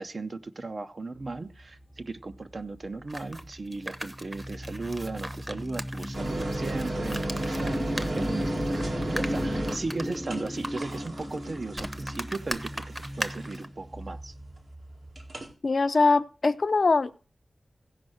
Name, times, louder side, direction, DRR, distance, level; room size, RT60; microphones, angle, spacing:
voice 1, 0.0-12.8 13.2-14.3, right 3 dB, 50° right, 0.7 m, -36 dB
sound 1, 1.2-15.4, equal, ahead, 0.6 m, -36 dB
sound 2, 3.1-13.7, right 1 dB, 20° right, 0.9 m, -39 dB
sound 3, 6.1-13.8 15.2-15.5, right 2 dB, 80° right, 2.3 m, -35 dB
voice 2, 15.6-17.2, left 3 dB, 55° left, 0.5 m, -22 dB
16.0 x 5.4 x 6.3 m
wide cardioid pair, 105°, 0 cm